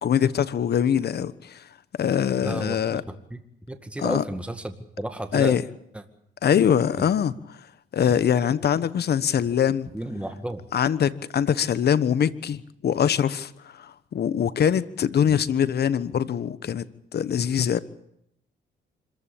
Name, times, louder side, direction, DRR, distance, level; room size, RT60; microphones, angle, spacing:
voice 1, 0.0-1.6 2.0-3.0 4.0-4.2 5.3-5.6 6.4-7.3 7.9-9.9 10.7-16.8 17.1-17.8, left 8 dB, 55° left, 16 dB, 1.2 m, -23 dB
voice 2, 2.4-3.4 3.7-5.6 5.9-6.0 7.0-7.1 9.9-10.6 15.3-15.4, right 1 dB, 5° right, 7 dB, 2.0 m, -32 dB
26.0 x 15.0 x 8.7 m, 0.78 s
cardioid pair, 90°, 20 cm